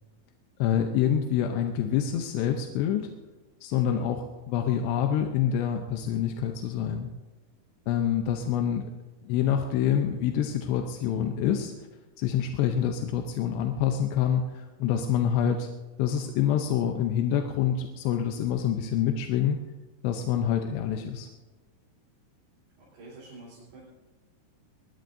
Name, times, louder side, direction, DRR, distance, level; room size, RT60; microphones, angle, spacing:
voice 1, 0.6-3.1 3.6-4.2 4.5-7.1 7.9-8.9 9.2-11.7 12.2-15.7 16.0-19.6 20.0-21.3, left 9 dB, 90° left, 4 dB, 3.0 m, -26 dB
voice 2, 3.7-4.1 22.8-23.8, right 3 dB, 65° right, -7 dB, 5.8 m, -47 dB
22.0 x 20.0 x 2.7 m, 1.3 s
omnidirectional pair, 4.8 m